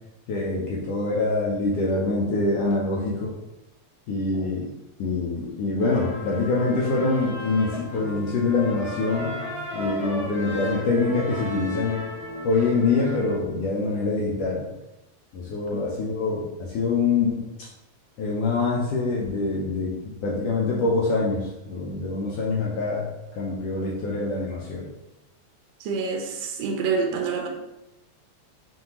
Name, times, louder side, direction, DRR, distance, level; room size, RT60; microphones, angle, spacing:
voice 1, 0.3-3.3 4.1-4.7 5.0-9.3 9.7-12.0 12.4-14.7 15.3-17.7 18.2-23.1 23.3-24.9, left 3 dB, 75° left, -4 dB, 1.4 m, -25 dB
sound 1, 5.8-13.4, left 1 dB, 50° left, 1.3 m, -35 dB
voice 2, 25.8-27.5, right 5 dB, 80° right, 2 dB, 1.6 m, -27 dB
5.4 x 2.6 x 2.9 m, 0.97 s
omnidirectional pair, 3.3 m